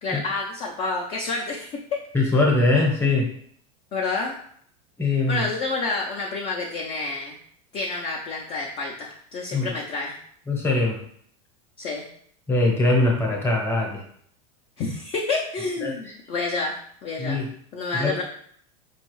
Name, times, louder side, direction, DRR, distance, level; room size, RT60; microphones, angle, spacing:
voice 1, 0.0-2.0 3.9-4.4 5.3-7.4 7.7-10.1 11.8-12.1 14.8-17.4 17.7-18.2, left 3 dB, 30° left, -1 dB, 0.4 m, -29 dB
voice 2, 2.1-3.3 5.0-5.4 9.5-9.7 10.5-11.0 12.5-14.0 15.8-16.1 17.2-17.5 17.9-18.2, left 2 dB, 15° left, -1 dB, 0.8 m, -22 dB
5.2 x 2.3 x 3.1 m, 0.63 s
supercardioid pair, 155°, 19 cm